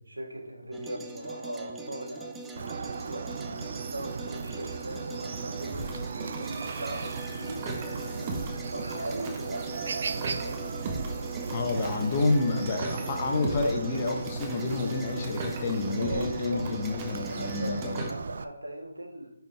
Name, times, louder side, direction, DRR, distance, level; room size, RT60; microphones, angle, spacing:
voice 1, 0.1-3.6 3.9-10.6 16.0-16.7 17.1-17.8 18.1-19.3, right 1 dB, 85° right, 1 dB, 1.8 m, -39 dB
sound 1, 0.7-18.1, right 3 dB, 5° right, 0.6 m, -42 dB
Chicken rooster, 2.6-18.4, right 5 dB, 55° right, 0.4 m, -37 dB
sound 2, 5.7-18.0, right 3 dB, 30° right, 1.5 m, -39 dB
voice 2, 11.5-18.0, left 3 dB, 35° left, 3 dB, 1.2 m, -29 dB
10.5 x 4.6 x 3.6 m, 0.80 s
figure-of-eight pair, 150°, 0 cm